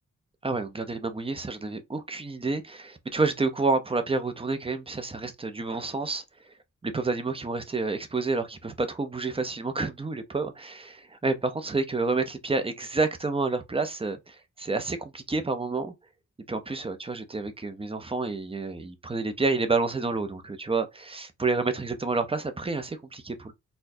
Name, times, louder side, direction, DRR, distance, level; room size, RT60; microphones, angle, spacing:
voice 1, 0.4-6.2 6.8-15.9 16.5-23.5, right 3 dB, 20° right, 0.6 m, -29 dB
4.2 x 2.2 x 2.6 m
wide cardioid pair, 110°, 31 cm